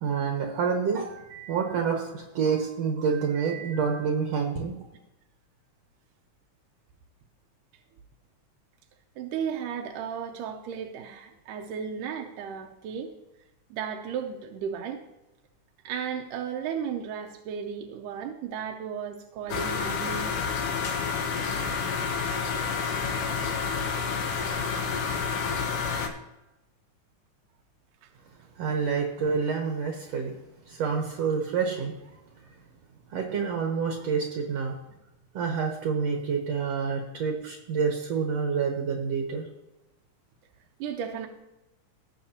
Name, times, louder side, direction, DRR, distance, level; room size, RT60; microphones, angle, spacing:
voice 1, 0.0-4.7 28.6-30.3 30.7-31.9 33.1-34.8 35.3-39.4, right 6 dB, 60° right, 2 dB, 2.0 m, -28 dB
voice 2, 9.2-13.1 13.7-15.0 15.8-20.3 22.8-22.9 28.0-28.1 40.8-41.3, right 7 dB, 80° right, 2 dB, 2.2 m, -34 dB
sound 1, 19.5-26.1, left 5 dB, 75° left, 2.4 m, -29 dB
18.5 x 6.6 x 2.9 m, 0.98 s
omnidirectional pair, 3.8 m